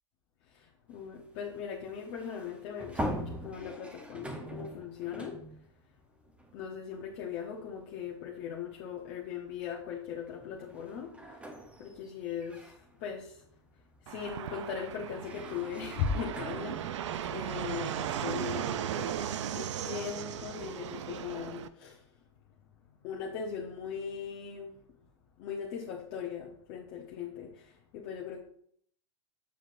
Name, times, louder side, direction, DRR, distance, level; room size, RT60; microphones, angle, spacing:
voice 1, 0.5-5.4 6.5-11.2 11.8-13.4 14.1-17.0 17.3-19.2 19.5-22.0 23.0-24.8 25.4-28.4, left 7 dB, 50° left, -2 dB, 1.0 m, -39 dB
sound 1, 0.9-7.3 7.6-7.8 8.9-9.1 9.5-19.3, equal, 10° right, 0.8 m, -43 dB
Fixed-wing aircraft airplane, 14.1-21.7, right 9 dB, 80° right, 0.5 m, -37 dB
7.1 x 5.8 x 2.6 m, 0.64 s
hypercardioid pair, 125°, 15 cm